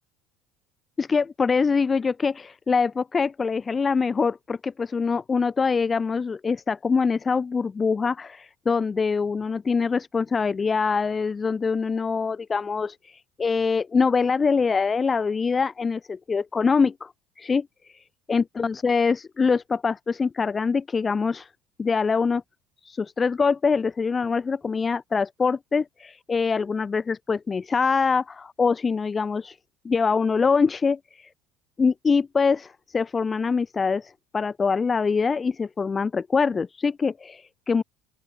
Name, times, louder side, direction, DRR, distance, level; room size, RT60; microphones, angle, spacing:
voice 1, 1.0-17.1 17.4-21.5 21.8-22.4 22.8-29.6 29.8-31.3 31.8-37.8, left 5 dB, 20° left, 4.2 m, -24 dB
open air
supercardioid pair, 125°, 0 cm